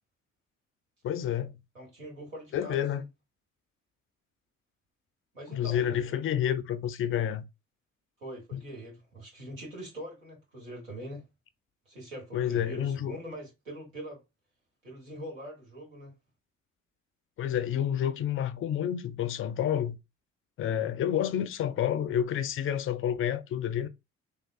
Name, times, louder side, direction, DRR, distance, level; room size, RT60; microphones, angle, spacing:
voice 1, 1.0-1.5 2.5-3.0 5.5-7.4 8.5-8.6 12.3-13.2 17.4-20.0 20.6-23.9, left 10 dB, 35° left, 0.4 m, -29 dB
voice 2, 1.7-3.1 5.3-6.1 8.2-11.2 11.9-14.2 14.8-16.1, right 1 dB, 85° right, 1.2 m, -43 dB
3.4 x 2.2 x 2.3 m
figure-of-eight pair, 45°, 38 cm